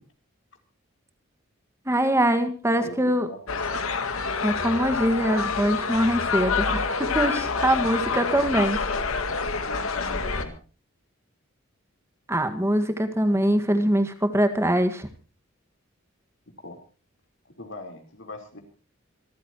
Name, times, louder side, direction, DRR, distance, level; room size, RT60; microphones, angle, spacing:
voice 1, 1.8-3.3 4.4-8.8 12.3-15.1, equal, 15° right, 9 dB, 1.8 m, -23 dB
voice 2, 2.8-3.8 8.0-8.5 9.6-10.6 16.6-16.8 17.5-18.6, left 2 dB, 60° left, 4 dB, 3.7 m, -41 dB
sound 1, 3.5-10.5, left 4 dB, 80° left, 2.0 m, -27 dB
27.0 x 14.0 x 3.0 m, 0.36 s
head